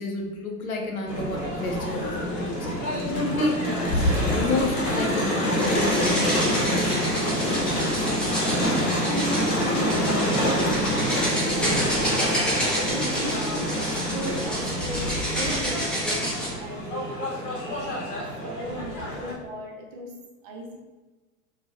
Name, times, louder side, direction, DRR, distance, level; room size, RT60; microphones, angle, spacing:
voice 1, 0.0-7.2, left 2 dB, 75° left, 1 dB, 0.7 m, -31 dB
Crowd, 1.1-19.3, equal, 35° left, 1.0 m, -26 dB
sound 1, 5.5-16.5, equal, ahead, 0.8 m, -30 dB
voice 2, 7.8-12.5 12.8-20.1 20.4-20.8, right 1 dB, 35° right, -1 dB, 0.7 m, -37 dB
3.8 x 2.3 x 2.5 m, 1.2 s
figure-of-eight pair, 85°, 43 cm